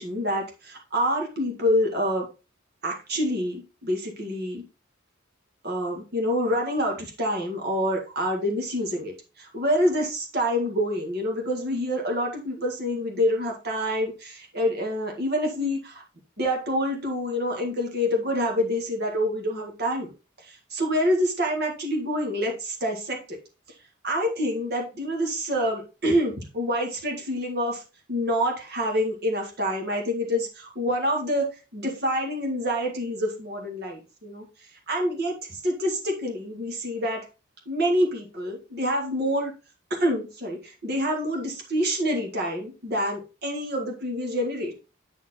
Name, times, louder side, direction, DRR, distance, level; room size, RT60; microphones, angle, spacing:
voice 1, 0.0-2.3 2.8-4.7 5.6-16.0 16.4-20.1 20.4-23.4 24.0-27.8 28.1-37.2 37.7-39.5 40.0-44.7, equal, 50° right, 1 dB, 1.8 m, -27 dB
8.9 x 4.4 x 4.2 m, 0.31 s
head